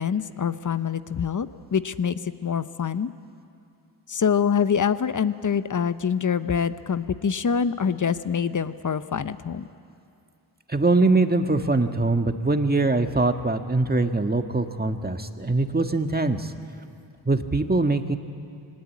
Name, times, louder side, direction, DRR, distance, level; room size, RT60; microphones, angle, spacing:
voice 1, 0.0-3.1 4.1-9.6, left 7 dB, 40° left, 13 dB, 0.9 m, -25 dB
voice 2, 10.7-16.6 17.3-18.2, right 3 dB, 20° right, 7 dB, 1.6 m, -22 dB
22.5 x 19.5 x 8.5 m, 2.6 s
supercardioid pair, 45°, 46 cm